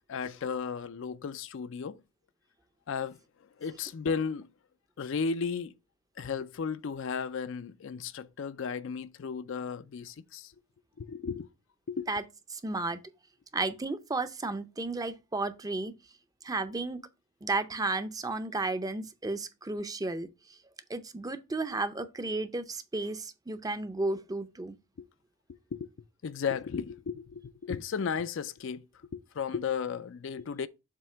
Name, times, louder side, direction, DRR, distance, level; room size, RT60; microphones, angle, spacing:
voice 1, 0.1-2.0 2.9-3.2 3.6-4.5 5.0-5.7 6.2-10.5 11.0-11.5 11.9-12.1 25.0-25.1 25.7-25.9 26.2-28.8 29.1-30.7, left 6 dB, 65° left, 0.4 m, -34 dB
voice 2, 12.5-13.0 13.5-15.9 16.4-17.0 17.4-20.6 20.9-24.8, right 2 dB, 20° right, 0.5 m, -33 dB
7.5 x 2.8 x 5.6 m
head